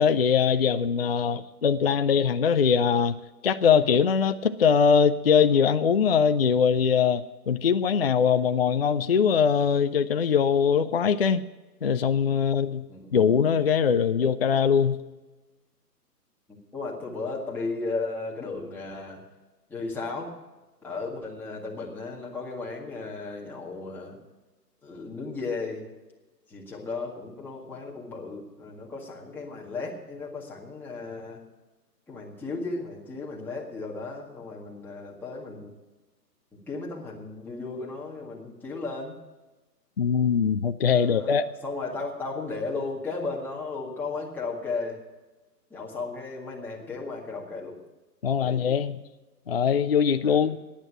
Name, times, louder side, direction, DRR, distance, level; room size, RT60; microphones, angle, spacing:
voice 1, 0.0-3.2 3.4-11.4 11.8-15.0 40.0-41.4 48.2-49.0 49.5-50.6, left 7 dB, 40° left, 0.4 m, -22 dB
voice 2, 12.9-13.4 16.5-19.2 19.7-20.3 20.8-24.2 24.8-25.9 26.5-31.4 32.1-35.8 36.5-39.2 40.9-45.0 45.7-47.8 48.4-48.6 50.2-50.5, left 3 dB, 5° left, 1.9 m, -35 dB
15.0 x 10.0 x 6.1 m
hypercardioid pair, 145°, 49 cm